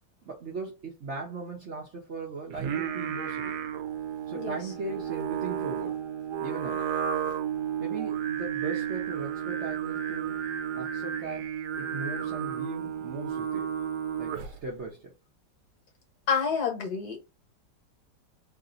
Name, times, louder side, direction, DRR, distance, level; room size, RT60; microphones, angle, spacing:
voice 1, 0.2-3.6 4.3-6.0 6.4-6.8 7.8-10.3 10.8-13.7 14.2-15.1, right 3 dB, 50° right, 0.9 m, -38 dB
Singing, 2.5-14.7, right 9 dB, 70° right, 1.1 m, -32 dB
voice 2, 16.3-17.2, left 6 dB, 65° left, 1.5 m, -28 dB
3.3 x 2.6 x 3.9 m
omnidirectional pair, 2.0 m